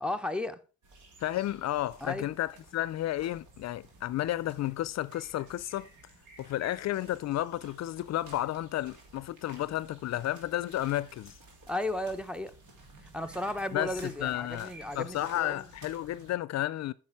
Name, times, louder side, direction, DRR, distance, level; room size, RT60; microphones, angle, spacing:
voice 1, 0.0-0.6 2.0-2.3 11.7-12.5 13.1-15.7, left 1 dB, 5° right, 0.7 m, -34 dB
sound 1, 0.8-16.4, right 2 dB, 75° right, 2.8 m, -54 dB
voice 2, 1.2-5.9 6.4-11.4 13.7-13.9 14.2-16.9, left 14 dB, 60° left, 0.4 m, -32 dB
8.7 x 6.0 x 4.7 m
cardioid pair, 90°, 30 cm